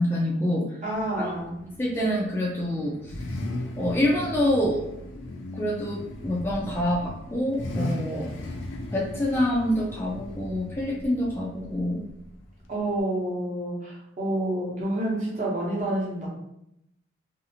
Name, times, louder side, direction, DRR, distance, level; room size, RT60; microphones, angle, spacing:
voice 1, 0.0-0.7 1.2-1.3 1.8-2.9 3.8-4.8 5.5-8.3 8.9-12.0, left 1 dB, 10° left, -4 dB, 0.3 m, -26 dB
voice 2, 0.8-1.6 12.7-16.3, right 1 dB, 40° right, -4 dB, 0.8 m, -28 dB
Car / Idling / Accelerating revving vroom, 0.9-13.0, left 1 dB, 85° left, 0.5 m, -37 dB
2.7 x 2.4 x 2.7 m, 0.81 s
head